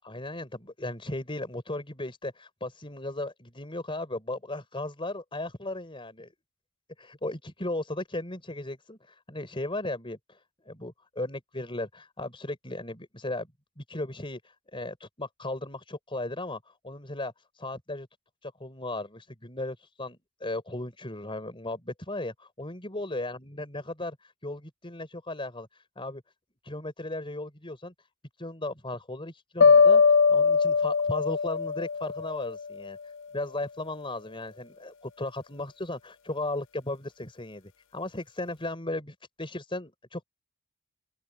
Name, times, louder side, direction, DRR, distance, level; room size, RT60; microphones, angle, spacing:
voice 1, 0.0-6.3 7.0-10.4 10.7-13.5 13.8-14.4 14.7-17.3 17.6-18.1 18.4-25.7 26.0-26.2 26.6-27.9 28.4-30.0 30.3-33.0 33.3-40.2, left 2 dB, 25° left, 4.4 m, -36 dB
sound 1, 29.6-32.7, left 5 dB, 55° left, 0.5 m, -21 dB
open air
head